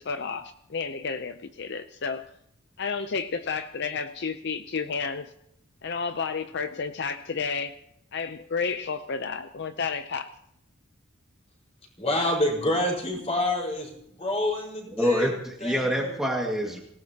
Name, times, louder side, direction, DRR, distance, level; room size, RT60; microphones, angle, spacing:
voice 1, 0.0-2.2 2.8-5.3 5.8-7.8 8.1-10.3, left 5 dB, 55° left, 9 dB, 0.6 m, -31 dB
voice 2, 12.0-15.3 15.6-16.1, left 1 dB, 30° left, -1 dB, 5.0 m, -27 dB
voice 3, 14.9-16.8, equal, ahead, -1 dB, 2.0 m, -26 dB
26.0 x 17.5 x 2.9 m, 0.75 s
head